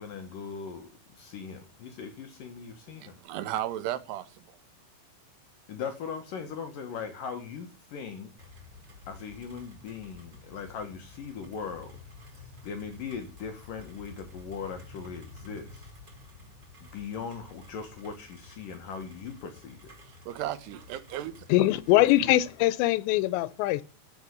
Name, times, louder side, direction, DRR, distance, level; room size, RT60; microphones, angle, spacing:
voice 1, 0.0-3.2 5.7-8.3 9.1-12.0 12.6-15.9 16.8-19.9, left 6 dB, 60° left, 2.8 m, -39 dB
voice 2, 2.9-4.6 20.3-21.5, right 12 dB, 75° right, 3.2 m, -35 dB
Rain, 8.4-22.6, left 3 dB, 25° right, 5.8 m, -51 dB
voice 3, 21.5-23.8, left 16 dB, 90° left, 3.1 m, -22 dB
10.5 x 8.0 x 9.9 m
omnidirectional pair, 5.0 m